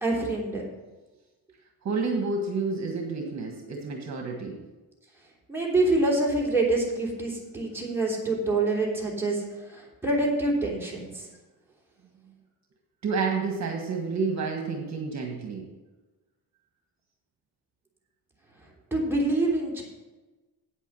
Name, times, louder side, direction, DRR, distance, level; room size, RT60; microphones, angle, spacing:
voice 1, 0.0-0.6 5.5-9.4 9.7-11.2 18.9-19.8, right 2 dB, 5° right, -3 dB, 3.2 m, -26 dB
voice 2, 1.8-4.6 13.0-15.7, right 4 dB, 50° right, 2 dB, 1.5 m, -29 dB
9.0 x 8.2 x 6.1 m, 1.2 s
cardioid pair, 130°, 34 cm